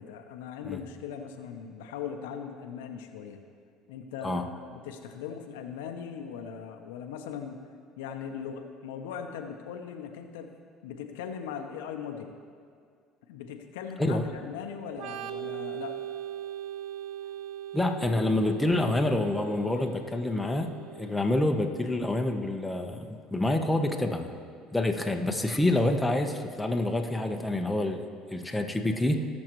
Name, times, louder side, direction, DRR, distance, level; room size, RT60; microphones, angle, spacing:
voice 1, 0.0-3.4 3.9-4.6 4.8-7.6 8.0-10.5 10.8-12.3 13.3-16.0, left 7 dB, 90° left, 4 dB, 0.8 m, -39 dB
Organ, 14.9-22.4, right 11 dB, 70° right, 0.6 m, -40 dB
voice 2, 17.7-24.3 24.7-29.3, left 1 dB, 10° left, 3 dB, 0.9 m, -27 dB
18.5 x 6.3 x 3.1 m, 2.2 s
supercardioid pair, 90°, 0 cm